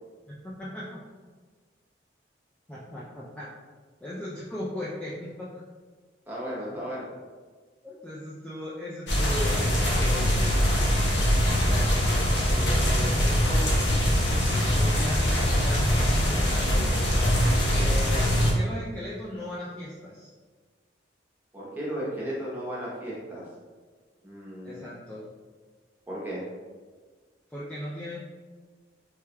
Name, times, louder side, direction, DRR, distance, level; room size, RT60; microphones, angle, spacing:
voice 1, 0.3-1.0 2.7-3.5 4.0-5.5 7.8-10.7 11.5-12.0 12.4-14.0 14.5-17.0 17.8-20.3 24.6-25.2 27.5-28.2, left 1 dB, 5° left, -8 dB, 0.3 m, -37 dB
voice 2, 6.3-7.1 17.7-18.0 21.5-23.5 24.2-24.8 26.1-26.4, equal, 10° right, -7 dB, 0.8 m, -35 dB
sound 1, 9.1-18.5, equal, 70° left, 0.8 m, -23 dB
3.3 x 3.3 x 2.2 m, 1.4 s
head